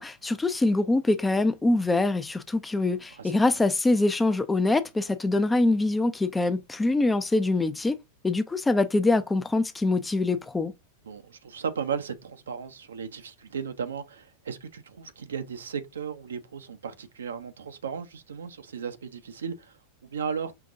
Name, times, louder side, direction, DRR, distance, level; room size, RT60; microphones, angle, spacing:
voice 1, 0.0-7.9 8.2-10.7, left 2 dB, 10° left, 0.4 m, -24 dB
voice 2, 11.0-20.5, right 6 dB, 65° right, 0.6 m, -35 dB
5.6 x 2.5 x 2.5 m
figure-of-eight pair, 90°, 0 cm